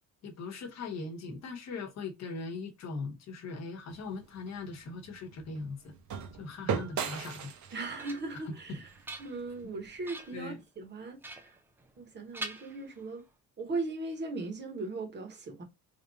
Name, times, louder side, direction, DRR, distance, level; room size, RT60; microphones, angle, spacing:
voice 1, 0.2-5.9 6.4-7.5 10.3-10.6, left 4 dB, 45° left, 1.1 m, -40 dB
sound 1, 3.9-10.0, right 7 dB, 55° right, 0.8 m, -39 dB
sound 2, 7.5-8.5 8.9-9.7 10.0-10.5 11.2-12.1 12.3-13.3, right 2 dB, 5° right, 0.3 m, -45 dB
voice 2, 7.7-8.9 9.2-11.5 12.0-13.2 13.6-15.6, right 3 dB, 30° right, 1.1 m, -38 dB
3.4 x 2.6 x 3.9 m
cardioid pair, 170°, 36 cm